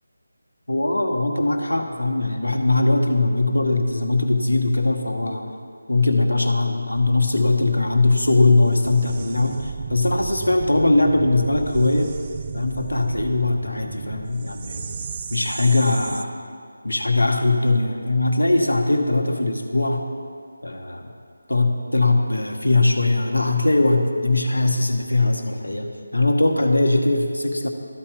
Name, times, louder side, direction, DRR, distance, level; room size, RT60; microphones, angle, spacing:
voice 1, 0.7-5.5 5.9-12.1 12.5-14.9 15.3-16.4 16.8-20.0 20.6-21.1 21.5-27.7, left 2 dB, 90° left, 4 dB, 1.0 m, -20 dB
sound 1, 6.9-16.2, right 6 dB, 30° right, 0.3 m, -34 dB
12.5 x 4.3 x 4.9 m, 2.1 s
figure-of-eight pair, 165°, 0 cm